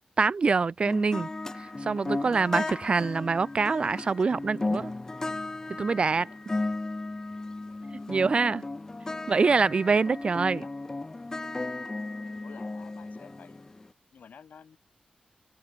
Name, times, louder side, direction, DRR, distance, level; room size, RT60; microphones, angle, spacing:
voice 1, 0.2-1.3 1.5-4.9 5.7-6.3 8.1-8.6 9.3-10.6, right 4 dB, 40° right, 0.4 m, -25 dB
sound 1, 0.8-13.9, left 2 dB, 20° left, 1.0 m, -35 dB
voice 2, 12.2-13.6 14.1-14.8, left 7 dB, 80° left, 5.9 m, -51 dB
open air
wide cardioid pair, 145°, 3 cm